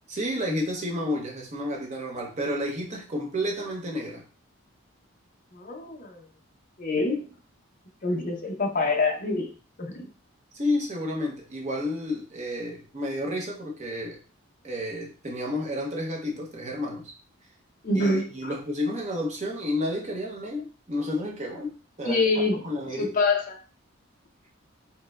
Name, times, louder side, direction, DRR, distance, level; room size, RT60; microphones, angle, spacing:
voice 1, 0.1-4.2 10.5-14.2 14.6-17.1 17.9-23.1, left 1 dB, 30° right, -1 dB, 0.6 m, -31 dB
voice 2, 5.5-6.2 6.8-7.2 8.0-9.5 9.8-10.1 17.8-18.5 22.0-22.6 23.0-23.6, left 3 dB, 40° left, 2 dB, 0.5 m, -26 dB
4.2 x 2.1 x 2.3 m, 0.37 s
head